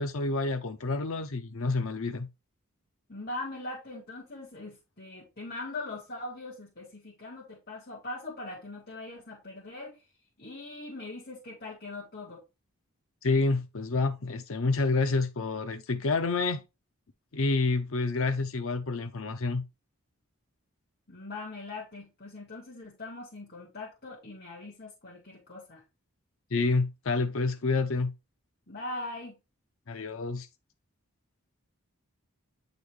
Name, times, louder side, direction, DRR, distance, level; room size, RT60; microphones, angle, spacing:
voice 1, 0.0-2.3 13.2-16.6 17.3-19.6 26.5-28.1 29.9-30.5, left 3 dB, 65° left, 0.7 m, -28 dB
voice 2, 3.1-10.0 10.4-12.4 21.1-25.8 28.7-29.3, left 2 dB, 45° left, 2.2 m, -41 dB
9.3 x 4.1 x 3.3 m
head